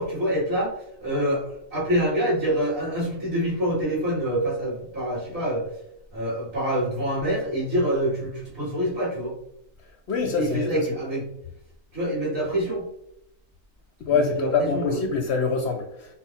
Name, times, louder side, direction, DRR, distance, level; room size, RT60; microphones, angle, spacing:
voice 1, 0.0-5.8 6.1-9.3 10.3-11.3 11.9-12.9 14.1-15.1, equal, 45° right, -7 dB, 2.1 m, -26 dB
voice 2, 10.1-10.8 14.0-16.1, left 4 dB, 60° left, 3 dB, 0.7 m, -25 dB
5.6 x 2.0 x 4.1 m, 0.78 s
omnidirectional pair, 1.5 m